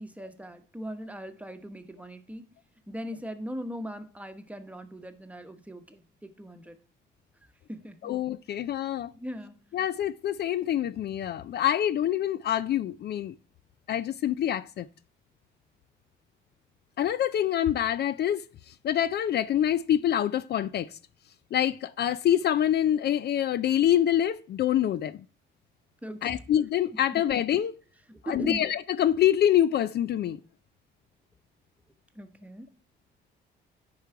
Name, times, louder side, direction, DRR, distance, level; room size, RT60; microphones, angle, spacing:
voice 1, 0.0-2.5 2.9-6.8 7.7-8.1 9.1-9.6 26.0-26.4 28.1-28.7 32.1-32.7, equal, 5° right, 1.1 m, -39 dB
voice 2, 8.0-9.1 9.7-13.3 13.9-14.9 17.0-21.0 21.5-25.2 26.2-27.7 28.3-30.4, left 11 dB, 55° left, 0.4 m, -26 dB
10.5 x 4.9 x 4.6 m
cardioid pair, 90°, 20 cm